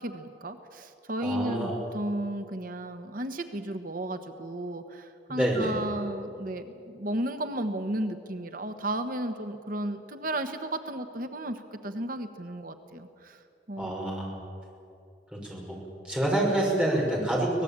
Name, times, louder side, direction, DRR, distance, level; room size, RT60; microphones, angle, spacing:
voice 1, 0.0-13.4 13.7-14.1, right 1 dB, 50° right, 8 dB, 1.2 m, -34 dB
voice 2, 1.2-1.8 5.3-5.7 13.8-14.4 15.3-15.8 16.0-17.6, right 1 dB, 5° right, -3 dB, 6.0 m, -27 dB
24.5 x 19.0 x 8.8 m, 2.6 s
head